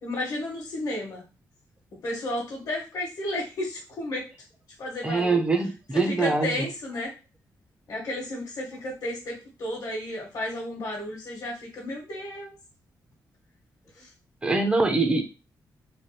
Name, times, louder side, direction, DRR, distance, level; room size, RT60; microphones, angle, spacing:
voice 1, 0.0-1.2 2.0-4.3 4.8-5.4 5.9-7.1 7.9-12.5 13.9-14.1, left 1 dB, 60° left, -3 dB, 1.0 m, -33 dB
voice 2, 5.0-6.6 14.4-15.2, right 3 dB, 15° right, 4 dB, 0.5 m, -23 dB
3.2 x 2.4 x 2.7 m, 0.31 s
wide cardioid pair, 155°, 7 cm